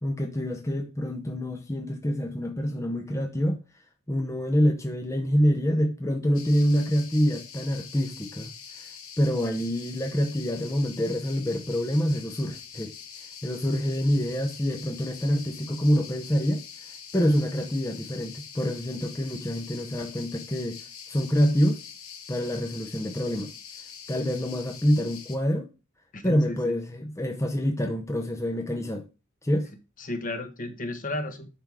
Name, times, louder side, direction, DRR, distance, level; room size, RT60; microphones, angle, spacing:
voice 1, 0.0-3.6 4.1-8.5 8.8-8.9 9.2-12.9 13.4-16.6 17.1-20.8 21.1-21.8 22.3-23.5 24.1-25.7 26.2-29.1 29.4-29.7, equal, 15° left, 0.8 m, -26 dB
sound 1, 6.3-25.4, left 7 dB, 70° left, 1.4 m, -44 dB
voice 2, 26.1-26.7 30.0-31.5, left 1 dB, 40° left, 1.2 m, -33 dB
10.0 x 3.7 x 4.8 m
head